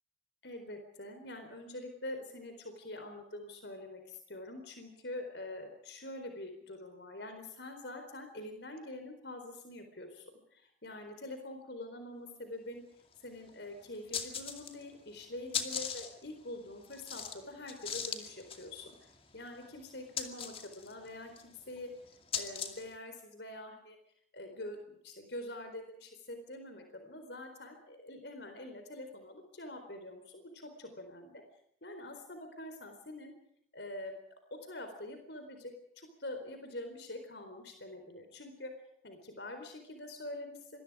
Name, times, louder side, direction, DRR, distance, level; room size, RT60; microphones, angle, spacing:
voice 1, 0.4-12.8 13.2-21.9 22.3-24.0 24.3-31.4 31.8-33.3 33.7-34.2 34.5-38.7 39.0-40.8, left 1 dB, 65° left, 6 dB, 4.2 m, -45 dB
sound 1, 13.1-13.2 13.5-13.6 14.0-14.9 15.2-22.9, left 7 dB, 30° left, 2.3 m, -40 dB
26.5 x 22.0 x 5.0 m, 0.69 s
head